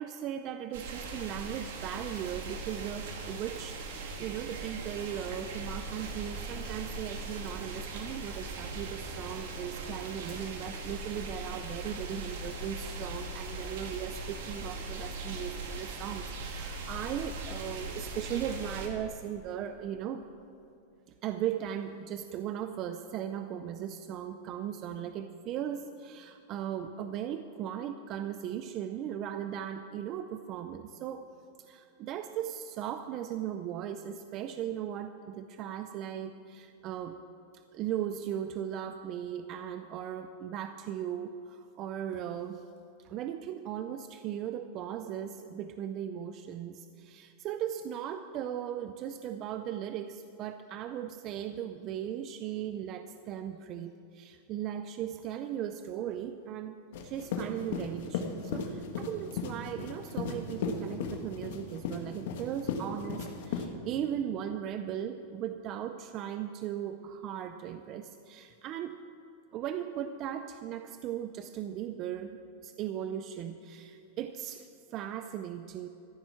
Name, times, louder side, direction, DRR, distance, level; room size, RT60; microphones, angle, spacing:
voice 1, 0.0-20.3 21.2-31.3 31.6-37.2 37.7-42.6 43.0-56.8 57.0-69.0 69.5-75.9, right 10 dB, 35° right, 9 dB, 0.5 m, -38 dB
sound 1, 0.7-18.9, right 3 dB, 70° right, 2.1 m, -40 dB
sound 2, 56.9-63.7, left 6 dB, 65° left, 1.7 m, -35 dB
14.0 x 10.0 x 6.3 m, 2.7 s
supercardioid pair, 160°, 0 cm